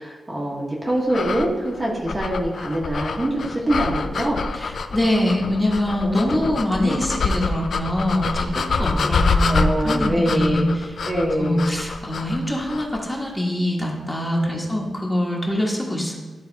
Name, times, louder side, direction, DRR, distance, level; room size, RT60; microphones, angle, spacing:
voice 1, 0.0-4.4 6.0-6.5 6.8-7.0 8.8-9.1 9.5-10.7 11.1-11.7 14.3-14.6, right 1 dB, 25° right, -3 dB, 1.2 m, -24 dB
sound 1, 1.1-13.0, left 4 dB, 60° left, 0.4 m, -26 dB
voice 2, 4.5-10.9 11.4-16.2, left 1 dB, 5° left, -3 dB, 1.4 m, -24 dB
12.0 x 4.0 x 4.0 m, 1.3 s
wide cardioid pair, 125°, 0 cm